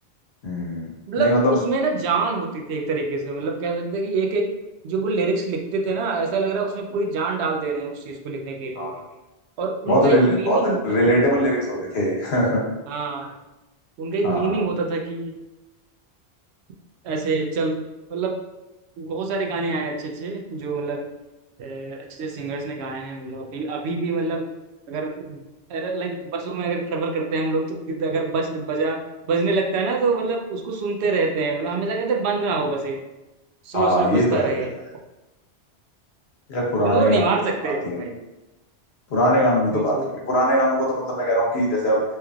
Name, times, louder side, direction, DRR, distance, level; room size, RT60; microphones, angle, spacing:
voice 1, 0.4-0.9 1.2-1.6 8.8-9.0 9.9-10.6 10.8-12.6 14.2-14.6 33.7-34.5 36.5-37.3 37.6-38.0 39.1-39.9 40.3-42.0, equal, 70° left, -3 dB, 1.1 m, -21 dB
voice 2, 1.1-4.5 4.8-9.0 9.6-11.0 12.9-13.4 14.0-15.3 17.0-17.8 18.1-18.4 19.0-21.1 21.6-24.4 24.9-25.4 25.7-29.0 29.3-33.0 33.6-34.7 36.8-38.2 39.7-40.1, right 4 dB, 80° right, 1 dB, 0.8 m, -25 dB
3.3 x 3.1 x 2.3 m, 1.0 s
omnidirectional pair, 1.1 m